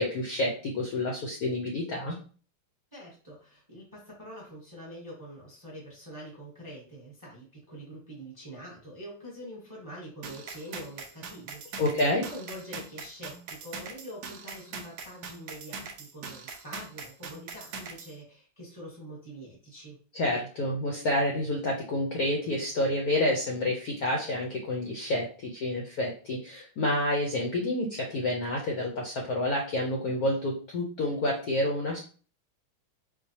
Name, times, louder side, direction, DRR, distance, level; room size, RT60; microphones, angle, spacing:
voice 1, 0.0-2.2 11.8-12.2 20.1-32.0, left 1 dB, 70° left, 0 dB, 0.9 m, -29 dB
voice 2, 2.9-11.9 12.1-20.0, equal, 15° right, -3 dB, 0.8 m, -45 dB
sound 1, 10.2-18.1, right 5 dB, 75° right, 0.9 m, -42 dB
4.5 x 2.2 x 2.8 m, 0.39 s
omnidirectional pair, 2.3 m